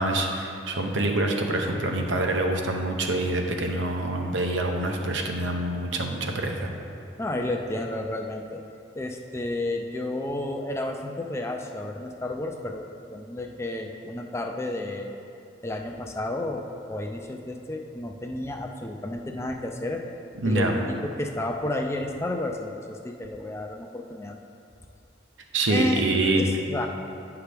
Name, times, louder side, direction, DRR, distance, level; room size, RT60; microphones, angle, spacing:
voice 1, 0.0-6.7 20.4-20.7 25.5-26.4, right 2 dB, 80° right, 2 dB, 0.8 m, -26 dB
voice 2, 7.2-8.6 8.9-15.1 15.6-20.0 20.4-24.3 25.7-26.0 26.4-26.9, left 1 dB, 15° left, 3 dB, 0.4 m, -31 dB
9.2 x 5.8 x 3.4 m, 2.6 s
head